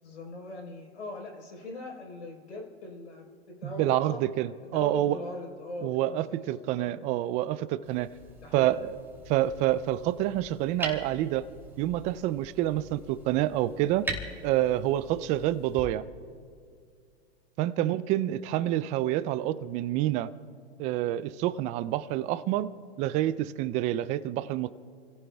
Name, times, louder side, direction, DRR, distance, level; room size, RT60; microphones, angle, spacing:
voice 1, 0.0-4.2 4.6-6.4 6.8-7.0 8.4-8.7 17.8-18.0, left 2 dB, 85° left, 1 dB, 4.1 m, -41 dB
voice 2, 3.6-5.2 5.8-8.1 8.5-9.0 9.3-11.5 11.8-14.0 14.4-16.1 17.6-20.3 20.8-22.7 23.0-24.7, right 14 dB, 20° right, 16 dB, 0.3 m, -27 dB
sound 1, 7.8-15.9, right 2 dB, 5° right, 2.6 m, -42 dB
29.5 x 16.5 x 2.3 m, 2.3 s
hypercardioid pair, 115°, 33 cm